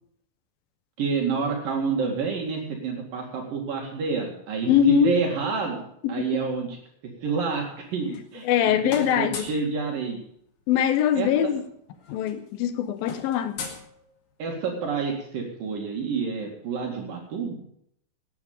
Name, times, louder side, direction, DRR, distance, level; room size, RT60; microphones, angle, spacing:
voice 1, 1.0-6.8 7.2-10.2 11.1-11.5 14.4-17.6, right 5 dB, 70° right, 3.8 m, -28 dB
voice 2, 4.7-5.2 6.0-6.3 8.5-9.5 10.7-11.6 12.1-13.6, left 9 dB, 80° left, 2.8 m, -22 dB
sound 1, 7.8-8.6 8.9-9.7 11.1-11.2 11.4-11.6 11.9-14.5, left 4 dB, 45° left, 2.7 m, -39 dB
18.5 x 9.5 x 5.3 m
omnidirectional pair, 4.2 m